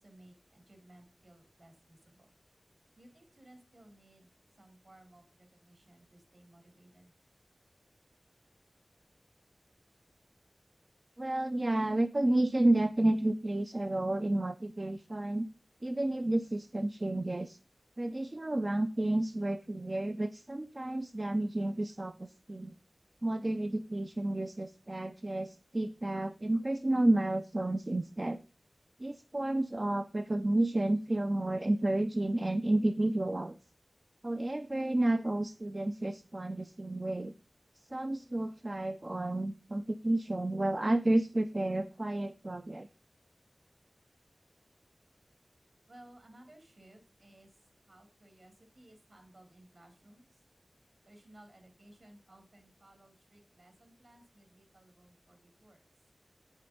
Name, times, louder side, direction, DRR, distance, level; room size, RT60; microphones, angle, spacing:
voice 1, 0.0-2.3 3.0-4.3 4.6-7.1 45.9-47.5 47.9-50.4 51.0-55.8, right 1 dB, 60° right, 4 dB, 3.3 m, -59 dB
voice 2, 11.2-15.5 15.8-17.6 18.0-22.7 23.2-28.4 29.0-33.6 34.2-37.3 37.9-42.9, right 1 dB, 40° right, 10 dB, 0.5 m, -31 dB
8.6 x 8.1 x 3.8 m, 0.35 s
wide cardioid pair, 70°, 0 cm